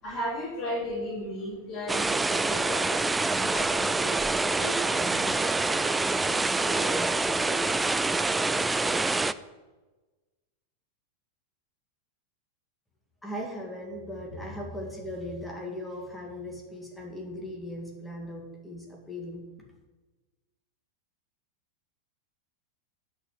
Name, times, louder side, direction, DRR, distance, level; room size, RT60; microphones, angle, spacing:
voice 1, 0.0-4.2 4.6-8.0, equal, 30° left, -7 dB, 3.9 m, -37 dB
sound 1, 1.9-9.3, right 3 dB, 10° right, 0.4 m, -26 dB
voice 2, 13.2-19.4, left 1 dB, 5° left, -1 dB, 2.4 m, -38 dB
10.5 x 5.6 x 7.5 m, 1.2 s
figure-of-eight pair, 90°, 0 cm